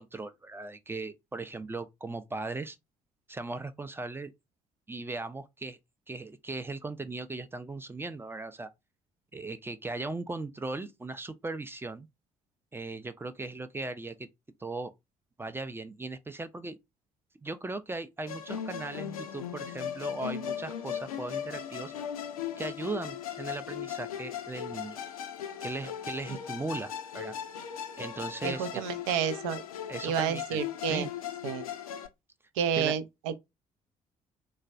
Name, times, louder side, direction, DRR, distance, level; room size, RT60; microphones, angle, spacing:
voice 1, 0.0-2.8 3.3-4.3 4.9-5.8 6.1-8.7 9.3-12.1 12.7-14.3 14.6-14.9 15.4-16.8 17.4-21.9 22.6-25.0 25.6-27.4 28.0-28.8 29.9-30.6 30.9-31.1 32.7-32.9, right 3 dB, 10° right, 0.4 m, -38 dB
Musical instrument, 18.3-32.1, left 9 dB, 80° left, 0.4 m, -38 dB
voice 2, 28.4-29.6 30.0-31.1 31.4-31.6 32.6-33.3, right 8 dB, 65° right, 0.5 m, -30 dB
3.9 x 2.1 x 2.5 m
figure-of-eight pair, 45°, 18 cm